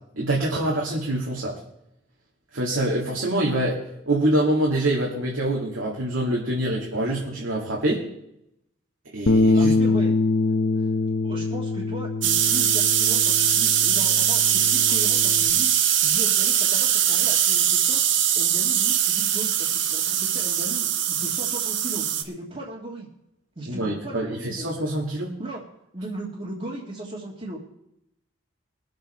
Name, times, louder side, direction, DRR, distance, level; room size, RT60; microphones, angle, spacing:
voice 1, 0.1-1.6 2.5-3.8 4.1-8.0 9.1-9.7 23.7-25.3, right 1 dB, 80° right, -3 dB, 2.2 m, -25 dB
Bass guitar, 9.3-15.5, left 3 dB, 70° left, 1.0 m, -24 dB
voice 2, 9.5-10.2 10.8-10.9 11.2-15.7 16.0-18.0 18.4-23.1 23.6-24.7 25.4-25.6 25.9-27.6, right 1 dB, 30° right, -5 dB, 1.8 m, -37 dB
sound 1, 12.2-22.2, right 9 dB, 65° right, 1.0 m, -21 dB
21.5 x 7.6 x 4.4 m, 0.81 s
head